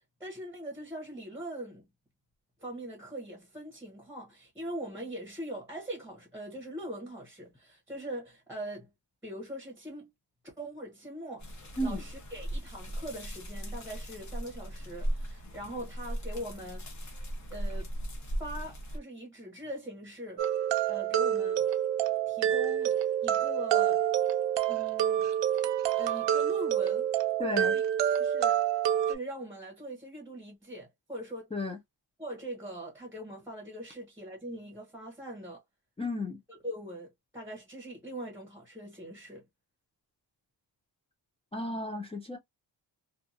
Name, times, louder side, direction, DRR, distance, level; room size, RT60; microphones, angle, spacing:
voice 1, 0.2-1.9 2.6-8.9 9.2-10.1 10.4-16.8 17.5-17.9 18.4-20.4 20.9-21.6 22.3-22.9 23.2-24.0 24.7-25.3 26.0-27.1 27.4-27.8 28.2-28.6 29.1-31.5 32.2-35.6 36.5-39.4, right 1 dB, 5° right, 0.8 m, -41 dB
sound 1, 11.4-19.0, right 1 dB, 40° left, 0.8 m, -37 dB
sound 2, 20.4-29.2, right 10 dB, 70° right, 0.6 m, -27 dB
voice 2, 27.4-27.8 31.5-31.8 36.0-36.4 41.5-42.4, left 1 dB, 15° left, 0.4 m, -33 dB
2.7 x 2.3 x 2.4 m
wide cardioid pair, 165°, 45 cm